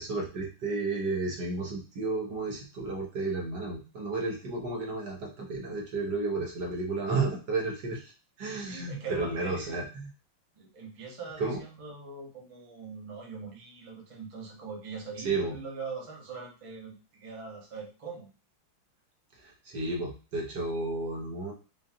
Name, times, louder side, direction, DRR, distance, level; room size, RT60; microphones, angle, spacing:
voice 1, 0.0-8.1 8.4-10.1 11.4-11.6 15.2-15.6 19.4-21.5, right 3 dB, 60° right, -1 dB, 1.4 m, -32 dB
voice 2, 8.6-9.8 10.5-18.3, right 4 dB, 40° right, -3 dB, 0.4 m, -42 dB
5.2 x 2.3 x 2.7 m, 0.34 s
omnidirectional pair, 2.4 m